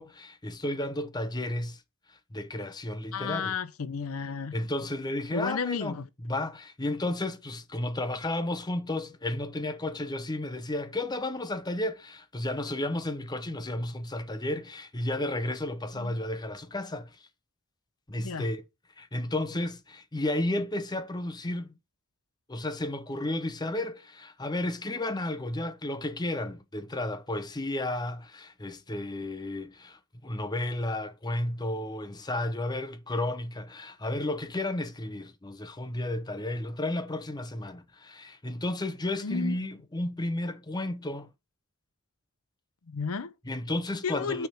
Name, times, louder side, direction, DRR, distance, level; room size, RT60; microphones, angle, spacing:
voice 1, 0.0-1.8 2.1-3.6 4.5-5.9 6.2-17.3 18.1-18.6 19.0-21.7 22.5-41.3 43.4-44.5, left 1 dB, 20° left, 0.7 m, -33 dB
voice 2, 3.1-4.5 5.3-6.1 15.9-16.2 18.2-18.5 39.2-39.6 42.9-43.3 44.0-44.5, left 5 dB, 80° left, 0.7 m, -33 dB
9.1 x 3.5 x 5.6 m
head